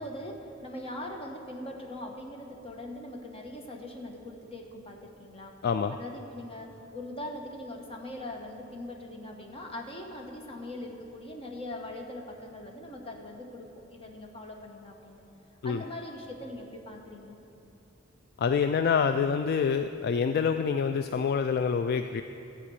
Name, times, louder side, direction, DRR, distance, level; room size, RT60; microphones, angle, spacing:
voice 1, 0.0-5.5 5.9-15.2 15.6-17.4, left 1 dB, 30° left, 1 dB, 1.2 m, -41 dB
voice 2, 5.6-6.0 15.6-15.8 18.4-22.2, left 6 dB, 50° left, 8 dB, 0.3 m, -26 dB
14.0 x 5.1 x 8.4 m, 2.9 s
head